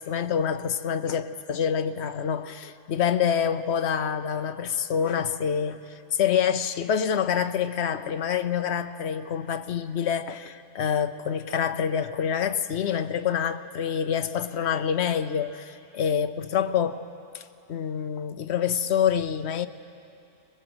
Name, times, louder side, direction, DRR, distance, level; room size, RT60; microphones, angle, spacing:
voice 1, 0.0-5.8 6.1-17.0 17.3-17.4 17.7-19.7, left 8 dB, 75° left, 11 dB, 1.0 m, -26 dB
21.5 x 20.5 x 7.9 m, 2.6 s
omnidirectional pair, 1.1 m